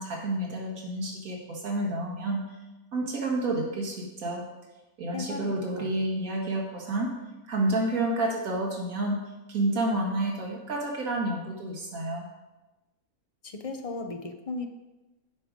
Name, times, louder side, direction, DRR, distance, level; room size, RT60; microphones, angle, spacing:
voice 1, 0.0-2.4 2.9-4.4 5.0-7.1 7.5-9.2 9.5-12.3, right 1 dB, 70° right, -1 dB, 1.9 m, -29 dB
voice 2, 5.1-5.5 13.6-14.7, left 3 dB, 55° left, 5 dB, 0.4 m, -35 dB
10.5 x 5.1 x 5.1 m, 1.1 s
omnidirectional pair, 1.6 m